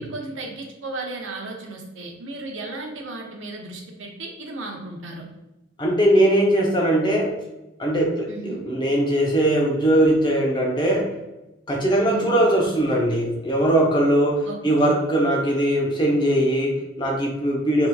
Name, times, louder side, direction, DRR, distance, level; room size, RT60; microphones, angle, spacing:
voice 1, 0.0-5.3 8.3-8.6 12.0-12.4 14.4-14.9, right 2 dB, 60° right, 0 dB, 0.6 m, -34 dB
voice 2, 5.8-7.3 7.8-11.1 11.7-17.9, right 1 dB, 20° left, -2 dB, 0.6 m, -20 dB
3.5 x 2.8 x 2.2 m, 0.98 s
head